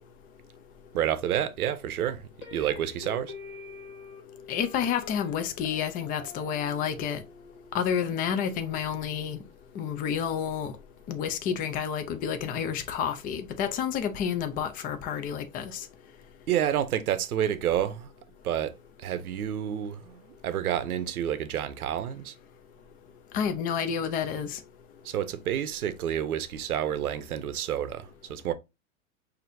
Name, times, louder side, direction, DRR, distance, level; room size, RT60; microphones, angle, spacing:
voice 1, 0.9-3.3 16.5-18.1 18.4-18.7 19.0-22.3 25.0-28.5, right 10 dB, 90° right, 0.7 m, -29 dB
sound 1, 2.4-9.5, left 5 dB, 70° left, 1.6 m, -47 dB
voice 2, 4.5-7.2 7.7-9.4 9.8-10.7 11.1-15.8 23.3-24.6, left 8 dB, 20° left, 0.4 m, -30 dB
5.9 x 2.7 x 2.6 m
hypercardioid pair, 120°, 43 cm